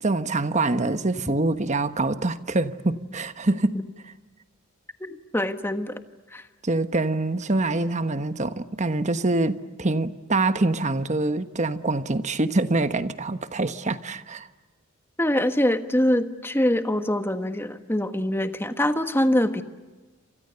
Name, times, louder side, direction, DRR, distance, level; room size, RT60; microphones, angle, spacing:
voice 1, 0.0-3.8 6.6-14.5, right 2 dB, 35° right, 1.1 m, -25 dB
voice 2, 5.0-6.0 6.3-6.4 15.2-19.6, left 1 dB, 10° left, 1.4 m, -24 dB
29.0 x 27.0 x 6.9 m
head